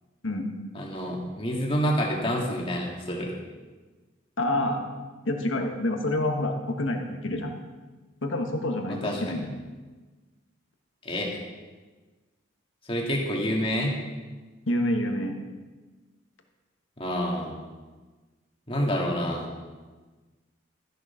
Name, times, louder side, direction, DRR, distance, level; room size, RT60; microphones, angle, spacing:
voice 1, 0.7-3.3 8.9-9.4 11.0-11.4 12.9-14.0 17.0-17.6 18.7-19.5, equal, 25° left, -1 dB, 1.8 m, -28 dB
voice 2, 4.4-4.8 5.2-7.5 8.2-9.5 14.7-15.4, left 1 dB, 75° left, 4 dB, 1.3 m, -27 dB
13.5 x 6.9 x 5.7 m, 1.3 s
head